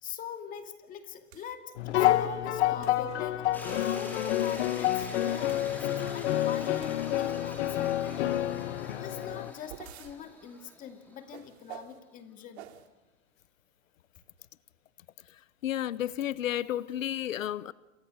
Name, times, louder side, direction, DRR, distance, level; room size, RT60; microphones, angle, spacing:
voice 1, 0.0-5.9 6.1-8.6 9.0-12.7, left 8 dB, 20° left, 7 dB, 2.3 m, -43 dB
sound 1, 1.3-1.5 2.0-2.3 2.8-3.1 3.7-3.9 4.4-6.4 6.8-7.3 9.2-10.1 11.3-12.0 12.5-12.9, right 11 dB, 55° right, 2.9 m, -49 dB
sound 2, 1.8-9.5, left 12 dB, 60° left, 1.7 m, -29 dB
sound 3, 3.5-11.5, left 1 dB, 5° left, 5.1 m, -46 dB
voice 2, 15.3-17.7, left 11 dB, 85° left, 18 dB, 1.0 m, -32 dB
29.0 x 28.5 x 6.5 m, 1.1 s
hypercardioid pair, 155°, 39 cm